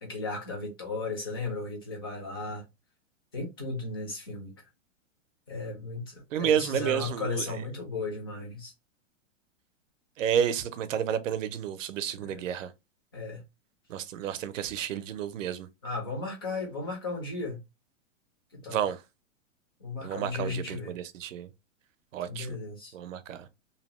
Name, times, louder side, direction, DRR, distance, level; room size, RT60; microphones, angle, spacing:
voice 1, 0.0-2.6 3.3-4.5 5.5-8.7 12.2-12.4 13.1-13.4 15.8-17.6 18.5-18.8 19.8-20.9 22.2-23.0, left 3 dB, 20° left, 0.4 m, -35 dB
voice 2, 6.3-7.5 10.2-12.7 13.9-15.7 18.7-19.0 20.0-21.5 22.1-22.6 22.9-23.5, right 9 dB, 75° right, 0.6 m, -30 dB
2.8 x 2.0 x 2.9 m
supercardioid pair, 175°, 39 cm